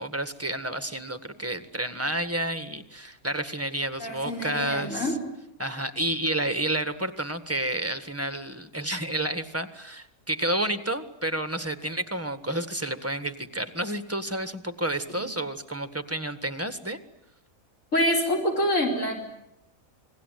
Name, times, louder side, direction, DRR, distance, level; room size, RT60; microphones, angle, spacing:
voice 1, 0.0-5.1 5.6-17.0, right 1 dB, 10° right, 11 dB, 1.6 m, -30 dB
voice 2, 4.0-5.2 17.9-19.1, equal, 55° left, 1 dB, 5.3 m, -26 dB
29.0 x 21.0 x 9.4 m, 0.84 s
omnidirectional pair, 1.5 m